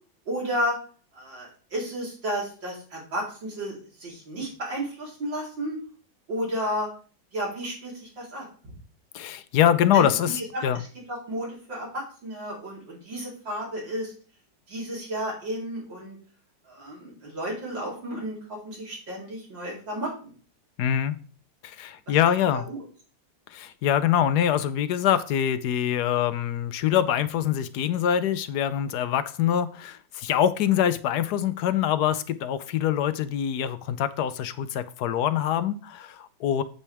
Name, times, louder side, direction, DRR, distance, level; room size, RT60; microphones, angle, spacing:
voice 1, 0.3-0.7 1.1-5.8 6.3-6.9 7.3-8.7 9.9-10.1 10.4-10.6 11.3-14.1 14.7-16.2 16.7-20.3 22.1-22.2 22.5-22.8, equal, 90° right, -4 dB, 4.7 m, -32 dB
voice 2, 9.1-10.8 20.8-21.2 21.6-22.7 23.5-36.6, left 10 dB, 70° left, 13 dB, 1.1 m, -24 dB
8.5 x 8.2 x 3.5 m, 0.40 s
omnidirectional pair, 2.0 m